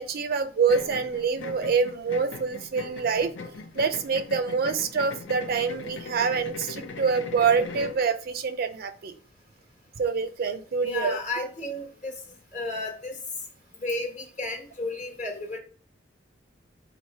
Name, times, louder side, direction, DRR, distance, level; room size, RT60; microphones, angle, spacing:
voice 1, 0.0-3.3 3.7-9.1 10.0-11.2, right 5 dB, 55° right, 9 dB, 0.4 m, -26 dB
sound 1, 0.7-8.0, left 3 dB, 80° left, 0.6 m, -39 dB
voice 2, 10.8-12.1 12.5-13.1 13.8-15.6, left 2 dB, 40° left, 2 dB, 1.2 m, -32 dB
4.8 x 2.0 x 4.1 m, 0.40 s
head